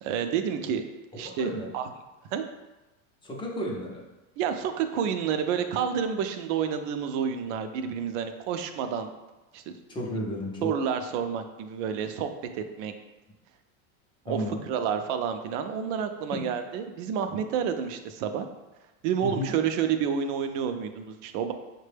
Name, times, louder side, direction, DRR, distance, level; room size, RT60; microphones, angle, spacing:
voice 1, 0.0-0.8 1.1-1.9 2.3-2.4 4.4-9.1 9.5-9.6 10.6-12.9 14.3-18.5 19.0-21.5, right 7 dB, 65° right, 7 dB, 0.5 m, -29 dB
voice 2, 1.1-1.7 3.2-4.0 9.9-10.7 14.3-14.6 16.3-16.5 19.2-19.5, equal, 15° left, -2 dB, 0.5 m, -33 dB
5.8 x 2.2 x 3.3 m, 1.1 s
supercardioid pair, 150°, 39 cm